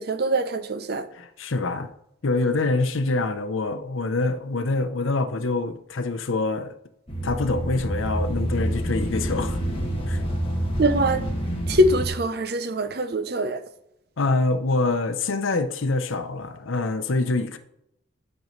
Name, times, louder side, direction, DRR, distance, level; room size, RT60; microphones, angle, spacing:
voice 1, 0.0-1.1 10.8-11.2 11.7-13.6, right 1 dB, 50° right, 0.7 m, -23 dB
voice 2, 1.1-1.9 2.2-6.7 7.2-9.6 10.1-10.2 14.2-17.6, left 3 dB, 80° left, 0.7 m, -25 dB
sound 1, 7.1-12.1, equal, 30° left, 1.7 m, -27 dB
13.5 x 5.3 x 3.2 m
head